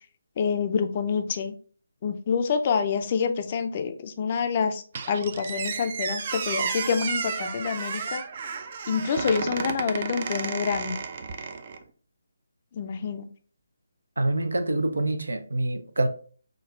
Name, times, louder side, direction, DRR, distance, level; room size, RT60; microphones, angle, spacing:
voice 1, 0.4-1.5 2.0-8.2 8.9-11.0 12.7-13.3, left 6 dB, 35° left, 0.5 m, -27 dB
Squeak, 4.9-11.8, right 5 dB, 40° right, 0.5 m, -32 dB
voice 2, 14.2-16.1, right 2 dB, 80° right, 0.7 m, -26 dB
5.2 x 2.3 x 3.7 m
figure-of-eight pair, 150°, 0 cm